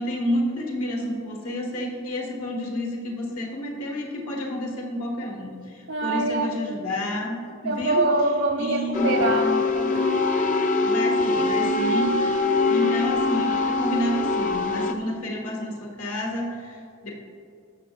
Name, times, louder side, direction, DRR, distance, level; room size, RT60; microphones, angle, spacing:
voice 1, 0.0-8.0 8.6-9.3 10.8-17.1, left 1 dB, 85° left, -1 dB, 1.8 m, -30 dB
voice 2, 5.9-6.6 7.6-10.0, right 2 dB, 80° right, 3 dB, 1.2 m, -24 dB
sound 1, 8.9-14.9, left 3 dB, 35° left, 0.5 m, -23 dB
18.0 x 7.1 x 2.5 m, 2.4 s
head